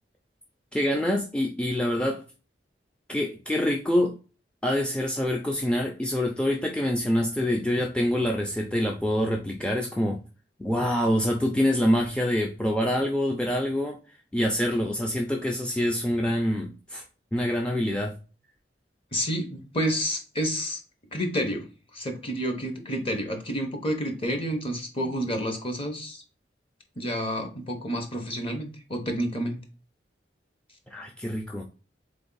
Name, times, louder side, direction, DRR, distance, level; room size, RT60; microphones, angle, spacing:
voice 1, 0.7-2.2 3.1-4.1 4.6-10.2 10.6-14.0 14.3-17.0 17.3-18.2 25.0-25.1 30.9-31.6, left 1 dB, 5° left, 0 dB, 0.4 m, -26 dB
voice 2, 19.1-20.8 21.1-21.6 21.9-26.2 27.0-29.6, equal, 30° left, 4 dB, 1.0 m, -29 dB
3.8 x 3.5 x 3.9 m, 0.35 s
head